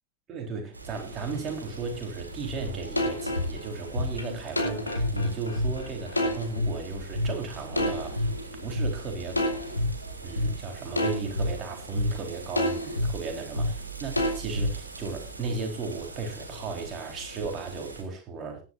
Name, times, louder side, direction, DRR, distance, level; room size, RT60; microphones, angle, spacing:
voice 1, 0.3-8.3 8.6-9.4 10.2-18.6, right 4 dB, 30° right, 3 dB, 4.1 m, -35 dB
sound 1, 0.7-18.0, right 3 dB, 75° right, 3.3 m, -41 dB
sound 2, 3.0-6.7 7.2-7.3 7.8-8.9 9.3-9.9 10.4-10.5 11.0-11.5 12.0-12.1 12.6-13.1 13.6-13.7 14.2-14.7, left 1 dB, 85° left, 2.5 m, -27 dB
20.0 x 11.0 x 2.7 m, 0.29 s
figure-of-eight pair, 90°, 0 cm